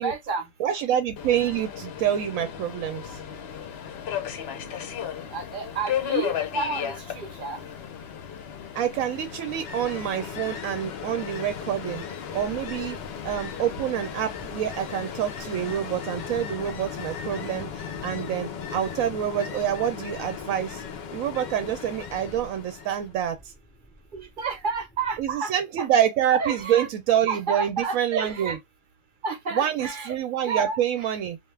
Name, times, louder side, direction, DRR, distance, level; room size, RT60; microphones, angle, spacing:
voice 1, 0.0-0.5 5.3-7.7 24.1-25.9 26.3-26.9 27.3-28.6 29.2-30.2 30.4-31.1, right 4 dB, 45° right, 0.8 m, -31 dB
voice 2, 0.6-3.2 8.7-12.0 12.3-13.0 13.2-20.8 21.1-23.5 25.2-28.6 29.5-31.4, right 10 dB, 85° right, 1.0 m, -27 dB
Subway metro underground, 1.2-15.8, left 9 dB, 60° left, 0.8 m, -36 dB
Ocean, 9.1-23.2, left 7 dB, 80° left, 0.4 m, -37 dB
sound 1, 12.3-25.3, equal, 15° left, 0.3 m, -51 dB
2.4 x 2.3 x 3.1 m
omnidirectional pair, 1.4 m